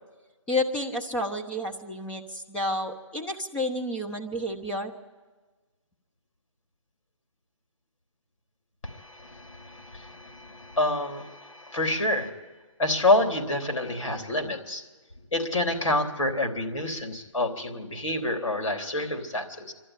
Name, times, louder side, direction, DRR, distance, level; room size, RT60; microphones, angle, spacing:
voice 1, 0.5-5.0, left 1 dB, 5° left, 1 dB, 0.9 m, -30 dB
voice 2, 8.8-12.3 12.8-14.8 15.3-19.7, left 1 dB, 75° left, 3 dB, 3.6 m, -28 dB
25.5 x 12.0 x 9.9 m, 1.3 s
figure-of-eight pair, 150°, 17 cm